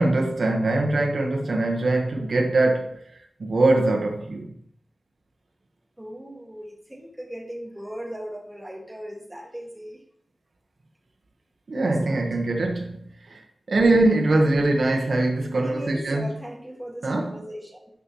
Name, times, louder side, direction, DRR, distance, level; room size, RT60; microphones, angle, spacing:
voice 1, 0.0-4.6 11.7-16.3 17.0-17.4, right 2 dB, 75° right, 1.3 m, -22 dB
voice 2, 6.0-10.0 12.0-12.2 15.5-17.9, equal, 15° right, 2.0 m, -38 dB
11.0 x 5.5 x 3.1 m
wide cardioid pair, 90°, 0 cm